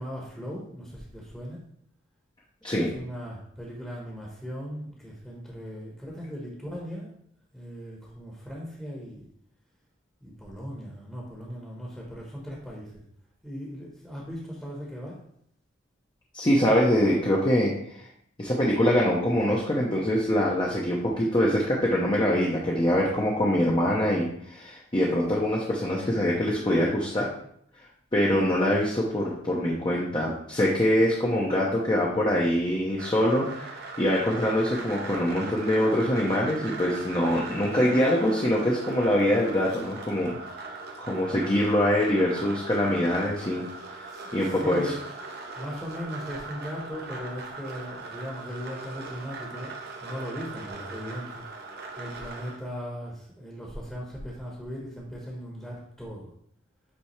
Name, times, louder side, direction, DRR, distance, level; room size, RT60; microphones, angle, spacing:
voice 1, 0.0-1.6 2.7-7.1 7.5-9.3 10.2-13.0 13.4-15.2 44.0-45.0 45.6-49.7 50.0-56.3, equal, 5° left, -4 dB, 1.1 m, -38 dB
voice 2, 16.3-18.1 18.4-27.3 28.1-40.4 41.0-43.6 44.0-44.1 44.3-44.9, equal, 25° left, -4 dB, 0.8 m, -24 dB
sound 1, 33.0-52.6, right 3 dB, 50° right, 0.8 m, -40 dB
8.6 x 3.4 x 3.2 m, 0.68 s
head